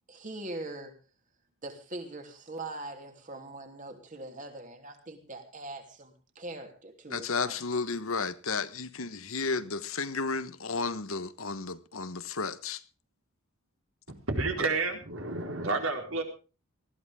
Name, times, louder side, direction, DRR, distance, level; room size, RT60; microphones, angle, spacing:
voice 1, 0.1-0.9 1.6-7.7, right 2 dB, 35° right, 3.1 m, -42 dB
voice 2, 7.1-12.8, left 4 dB, 75° left, 1.2 m, -33 dB
voice 3, 14.3-16.2, right 3 dB, 75° right, 4.2 m, -30 dB
19.5 x 15.0 x 3.6 m
head